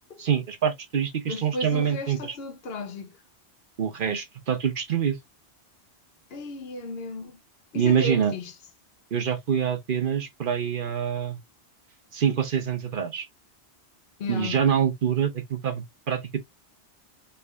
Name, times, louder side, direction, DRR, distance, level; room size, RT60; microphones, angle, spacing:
voice 1, 0.2-2.4 3.8-5.2 7.7-8.3 9.1-11.4 12.1-13.2 14.3-16.4, right 8 dB, 55° right, 0.9 m, -25 dB
voice 2, 1.3-3.2 6.3-7.4 7.7-8.5 14.2-14.6, left 3 dB, 65° left, 0.8 m, -34 dB
3.5 x 3.4 x 2.3 m
omnidirectional pair, 1.2 m